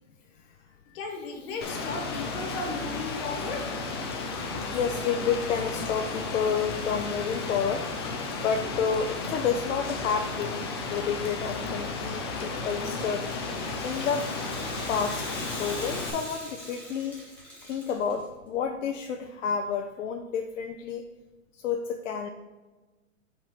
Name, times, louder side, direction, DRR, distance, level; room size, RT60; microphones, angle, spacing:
voice 1, 0.9-3.8, left 3 dB, 40° left, 2 dB, 1.4 m, -35 dB
Rain, 1.6-16.1, left 3 dB, 20° left, 0.3 m, -33 dB
voice 2, 4.7-10.6 10.9-13.3 13.8-14.3 14.9-17.3 17.6-21.0 21.5-22.3, left 6 dB, 70° left, 4 dB, 0.6 m, -30 dB
Rattle (instrument), 12.8-18.2, equal, 5° left, 1.3 m, -42 dB
4.9 x 3.7 x 5.5 m, 1.2 s
hypercardioid pair, 145°, 40 cm